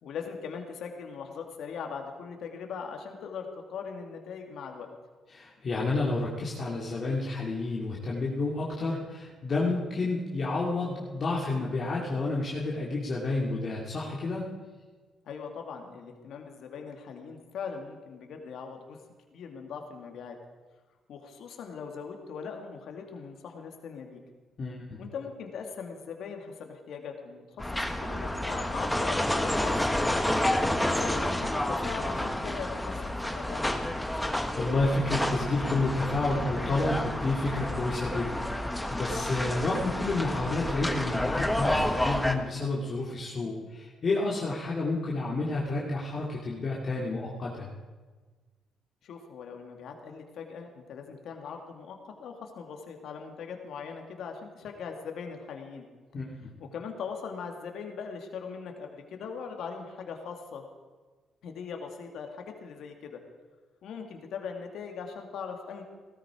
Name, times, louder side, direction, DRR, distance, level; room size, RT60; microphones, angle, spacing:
voice 1, 0.0-4.9 15.3-19.0 19.3-20.4 21.1-24.2 25.0-30.2 30.9-33.7 49.0-55.8 56.6-60.7 61.4-63.2 63.8-65.8, left 6 dB, 70° left, 3 dB, 2.1 m, -40 dB
voice 2, 5.3-14.5 24.6-25.0 34.2-47.7 56.1-56.3, left 2 dB, 45° left, -4 dB, 2.6 m, -30 dB
sound 1, 27.6-42.3, left 1 dB, 5° left, 1.4 m, -29 dB
17.0 x 13.5 x 4.9 m, 1.4 s
cardioid pair, 90°, 0 cm